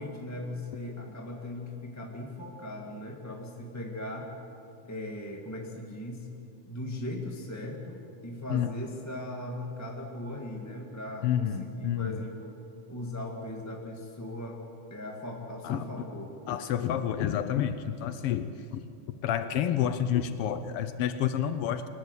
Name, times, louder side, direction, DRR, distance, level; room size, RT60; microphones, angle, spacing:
voice 1, 0.0-4.3 4.8-6.3 6.6-12.5 12.9-14.6 14.9-16.4, left 1 dB, 5° left, 0 dB, 1.3 m, -38 dB
voice 2, 11.2-12.2 15.6-15.8 16.5-18.9 19.2-21.9, left 9 dB, 85° left, 11 dB, 1.2 m, -29 dB
25.0 x 19.5 x 8.3 m, 2.7 s
omnidirectional pair, 3.5 m